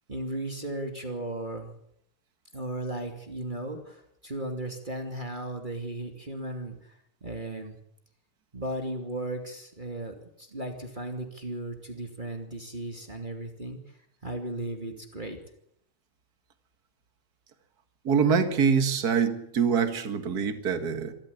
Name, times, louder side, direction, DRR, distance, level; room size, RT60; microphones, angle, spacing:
voice 1, 0.1-1.7 2.5-6.9 7.2-7.8 8.5-13.8 14.2-15.4, right 1 dB, 25° right, 3 dB, 2.7 m, -36 dB
voice 2, 18.0-21.1, right 6 dB, 50° right, 8 dB, 2.3 m, -24 dB
26.0 x 13.5 x 8.5 m, 0.73 s
omnidirectional pair, 2.2 m